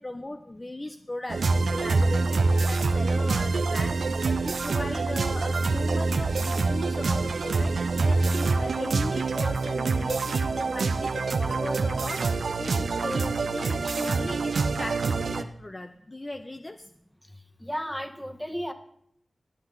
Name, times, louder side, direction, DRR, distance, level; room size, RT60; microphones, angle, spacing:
voice 1, 0.0-16.9, left 1 dB, 35° left, 6 dB, 0.7 m, -37 dB
sound 1, 1.3-15.4, right 3 dB, 85° right, 0.6 m, -26 dB
voice 2, 17.6-18.7, equal, 5° left, 6 dB, 1.6 m, -33 dB
23.0 x 8.0 x 4.0 m, 0.68 s
cardioid pair, 50°, 0 cm